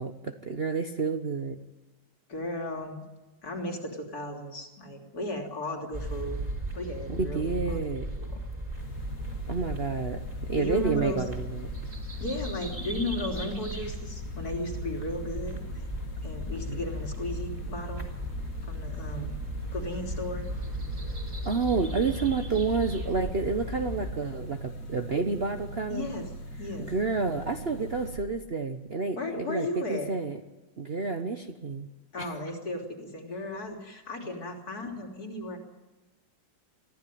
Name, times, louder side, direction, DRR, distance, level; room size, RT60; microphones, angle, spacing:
voice 1, 0.0-1.6 7.1-8.1 9.5-10.2 10.5-11.7 16.7-16.8 19.2-19.3 21.4-26.1 26.8-30.4 30.8-31.9 32.2-32.3, right 4 dB, 40° right, 6 dB, 1.1 m, -30 dB
voice 2, 2.3-3.0 3.4-6.4 6.8-8.4 10.6-11.2 12.2-15.8 16.2-18.0 18.6-19.4 19.7-20.5 25.9-26.3 26.6-26.9 29.2-30.1 32.1-35.6, left 1 dB, 55° left, 1 dB, 3.8 m, -35 dB
sound 1, 5.9-24.1, equal, 20° right, 3.6 m, -36 dB
sound 2, 8.8-28.2, right 1 dB, 75° left, 2.6 m, -41 dB
23.5 x 15.5 x 9.3 m, 1.1 s
omnidirectional pair, 1.9 m